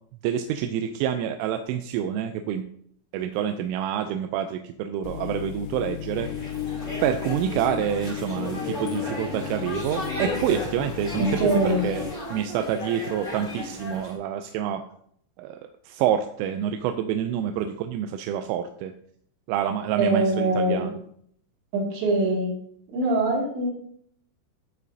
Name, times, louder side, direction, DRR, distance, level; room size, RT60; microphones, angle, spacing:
voice 1, 0.2-2.6 3.1-6.3 7.0-12.0 12.3-14.8 15.4-18.9 19.5-21.0, right 9 dB, 85° right, 7 dB, 3.0 m, -27 dB
sound 1, 5.0-12.1, left 10 dB, 85° left, 3.2 m, -34 dB
sound 2, 6.1-14.2, left 1 dB, 20° left, 1.2 m, -35 dB
voice 2, 11.2-11.8 20.0-20.9 21.7-22.5 22.9-23.7, right 2 dB, 60° right, -3 dB, 4.4 m, -23 dB
15.0 x 5.1 x 2.7 m, 0.64 s
omnidirectional pair, 5.9 m